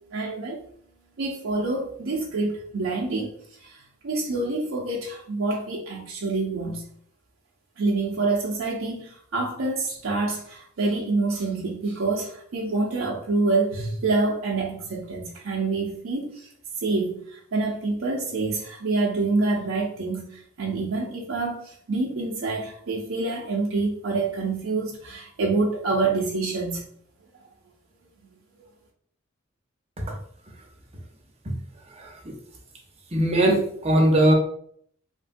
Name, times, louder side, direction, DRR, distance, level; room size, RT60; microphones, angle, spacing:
voice 1, 0.1-0.6 1.2-3.3 3.6-3.8 4.0-6.8 7.8-16.5 16.8-26.8, right 3 dB, 75° right, -3 dB, 0.5 m, -27 dB
voice 2, 33.1-34.3, right 1 dB, 30° right, 0 dB, 0.6 m, -19 dB
3.2 x 2.1 x 2.5 m, 0.63 s
head